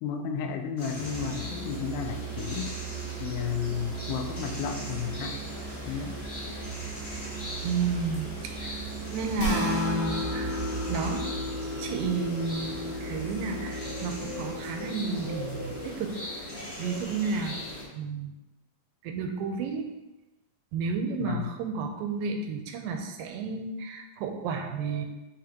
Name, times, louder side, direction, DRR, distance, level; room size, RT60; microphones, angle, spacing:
voice 1, 0.0-2.8 3.2-5.4 5.9-6.2 21.2-21.5, left 7 dB, 85° left, 6 dB, 2.4 m, -33 dB
sound 1, 0.8-17.8, left 1 dB, 20° left, 1.4 m, -39 dB
Musical instrument, 1.0-11.3, right 8 dB, 60° right, 1.4 m, -39 dB
voice 2, 7.6-8.8 9.1-11.2 11.6-16.1 16.4-17.6 17.9-18.3 19.0-19.9 20.7-25.1, right 4 dB, 85° right, 4 dB, 2.4 m, -32 dB
sound 2, 9.4-15.8, left 2 dB, 60° left, 2.3 m, -34 dB
6.6 x 5.6 x 2.9 m, 1.0 s
omnidirectional pair, 4.1 m